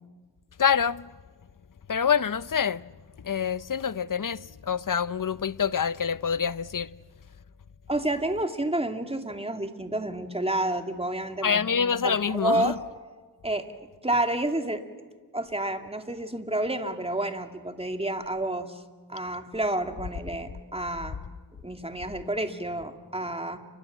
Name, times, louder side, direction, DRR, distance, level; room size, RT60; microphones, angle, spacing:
voice 1, 0.6-1.1 1.9-2.9 3.2-6.9 11.4-12.7, left 7 dB, 50° left, 0.8 m, -26 dB
voice 2, 7.9-11.6 12.0-12.8 13.4-14.8 15.3-18.8 19.1-21.2 21.6-23.6, right 1 dB, 15° right, 2.5 m, -29 dB
29.5 x 24.5 x 7.4 m
cardioid pair, 45°, 41 cm